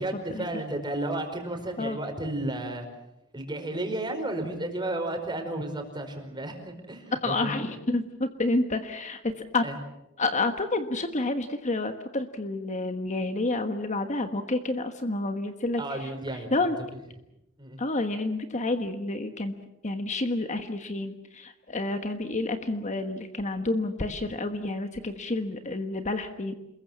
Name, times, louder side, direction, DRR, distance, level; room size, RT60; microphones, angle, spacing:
voice 1, 0.0-2.9 3.3-7.7 9.6-9.8 15.8-16.7 17.6-17.8, right 1 dB, 20° right, 4 dB, 4.9 m, -33 dB
voice 2, 7.2-9.6 10.2-16.8 17.8-19.5 19.8-26.5, left 2 dB, 35° left, 7 dB, 1.3 m, -29 dB
28.0 x 22.0 x 7.4 m, 0.87 s
head